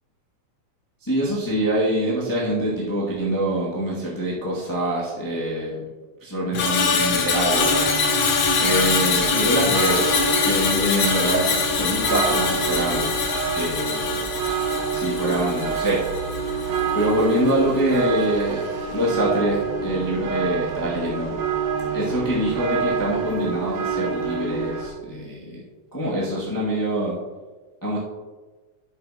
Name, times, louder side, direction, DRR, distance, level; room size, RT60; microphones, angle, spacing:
voice 1, 1.0-5.8 6.2-8.2 8.6-13.1 13.5-14.2 14.5-14.6 14.9-16.0 16.4-16.6 16.9-21.4 21.9-25.6 25.9-27.2 27.8-28.0, right 1 dB, 10° left, -8 dB, 1.4 m, -25 dB
Screech, 6.5-16.9 17.2-17.5, left 5 dB, 90° left, 1.0 m, -23 dB
sound 1, 7.5-24.9, right 5 dB, 80° right, 2.7 m, -27 dB
10.0 x 8.4 x 2.9 m, 1.3 s
omnidirectional pair, 3.7 m